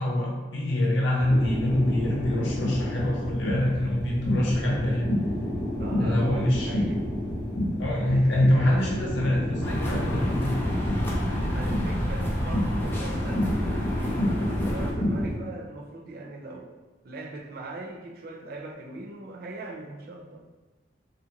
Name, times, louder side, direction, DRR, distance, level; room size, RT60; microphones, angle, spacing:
voice 1, 0.0-5.1 6.0-6.8 7.8-10.5, left 1 dB, 85° left, -3 dB, 0.7 m, -25 dB
sound 1, 1.2-15.3, left 1 dB, 50° left, 0.9 m, -29 dB
voice 2, 5.8-7.0 8.0-9.1 11.5-16.7 17.0-20.4, right 2 dB, 55° right, 2 dB, 0.4 m, -40 dB
sound 2, 9.6-14.9, equal, 10° left, 0.5 m, -30 dB
2.5 x 2.4 x 2.8 m, 1.2 s
head